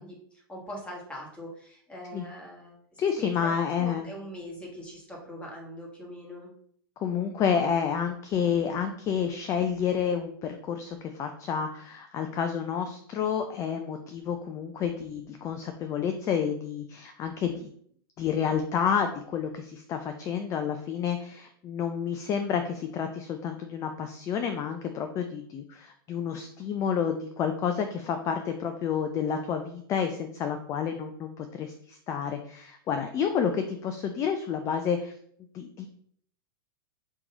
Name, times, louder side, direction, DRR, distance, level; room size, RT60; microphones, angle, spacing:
voice 1, 0.0-6.5, equal, 10° left, -3 dB, 1.5 m, -42 dB
voice 2, 3.0-4.1 7.0-17.7 18.2-35.1 35.5-35.9, left 7 dB, 25° left, 6 dB, 0.4 m, -29 dB
3.7 x 3.0 x 3.9 m, 0.63 s
hypercardioid pair, 125°, 13 cm